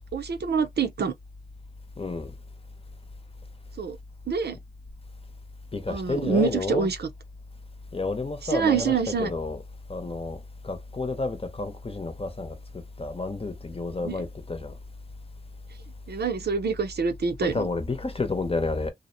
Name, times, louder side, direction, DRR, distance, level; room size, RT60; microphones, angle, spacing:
voice 1, 0.1-1.1 3.8-4.0 4.3-4.6 5.9-7.1 8.5-9.3 14.0-14.2 16.1-17.7, right 5 dB, 90° right, 0.6 m, -26 dB
voice 2, 2.0-2.3 5.7-6.9 7.9-9.6 9.9-14.7 17.4-18.9, left 3 dB, 35° left, 0.8 m, -30 dB
2.7 x 2.0 x 2.6 m
wide cardioid pair, 65°, 16 cm